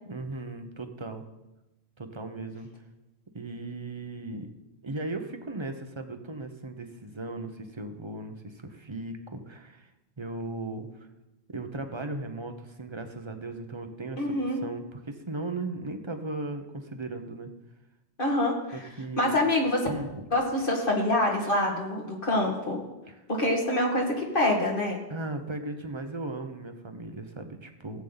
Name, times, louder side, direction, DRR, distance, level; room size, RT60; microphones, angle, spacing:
voice 1, 0.0-1.2 2.0-2.7 3.3-4.5 4.8-9.9 10.2-11.1 11.5-17.5 18.7-19.4 19.9-20.2 23.1-23.2 25.1-28.0, right 2 dB, 25° right, 6 dB, 0.9 m, -37 dB
voice 2, 14.2-14.6 18.2-18.8 19.2-19.9 20.3-22.8 23.3-25.0, left 1 dB, 50° left, -1 dB, 2.0 m, -26 dB
15.5 x 8.4 x 4.0 m, 0.99 s
omnidirectional pair, 1.1 m